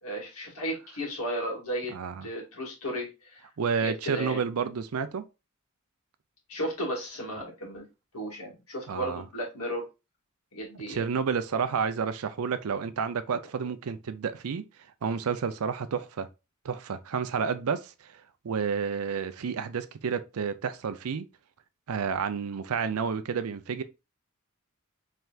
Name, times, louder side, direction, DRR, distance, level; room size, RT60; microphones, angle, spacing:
voice 1, 0.0-1.9 2.2-3.4 3.8-4.4 6.5-7.8 8.1-9.8 10.5-11.0, equal, 85° left, 2.0 m, -34 dB
voice 2, 1.9-2.3 3.6-5.2 8.9-9.2 10.9-14.6 15.0-16.3 16.6-17.9 18.4-21.3 21.9-23.8, right 6 dB, 85° right, 0.5 m, -30 dB
4.4 x 3.3 x 2.4 m
head